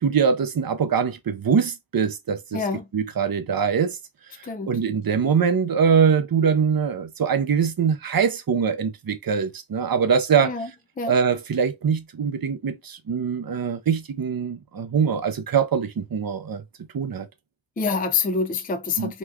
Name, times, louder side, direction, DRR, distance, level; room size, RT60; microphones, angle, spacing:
voice 1, 0.0-2.6 2.9-4.0 4.7-10.5 11.1-16.6 16.9-17.3 19.0-19.1, right 6 dB, 50° right, 0.7 m, -23 dB
voice 2, 2.5-2.8 4.5-4.7 10.4-10.7 11.0-11.1 17.8-19.2, left 4 dB, 20° left, 0.4 m, -26 dB
3.0 x 2.3 x 3.5 m
cardioid pair, 45°, 46 cm